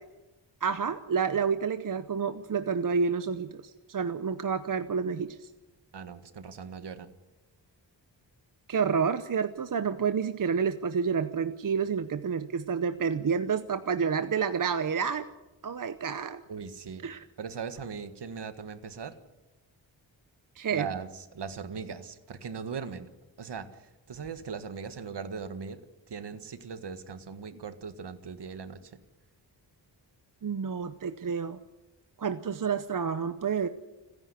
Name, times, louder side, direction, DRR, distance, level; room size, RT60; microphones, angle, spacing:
voice 1, 0.6-3.6 3.9-5.5 8.7-15.3 15.6-16.4 17.0-17.2 20.6-20.9 30.4-31.6 32.2-33.7, right 6 dB, 45° right, 11 dB, 0.8 m, -29 dB
voice 2, 5.9-7.1 16.5-17.1 17.4-19.1 20.7-23.1 23.4-25.8 26.1-28.9, right 6 dB, 65° right, 11 dB, 1.7 m, -39 dB
29.5 x 10.5 x 9.9 m, 1.0 s
wide cardioid pair, 145°, 44 cm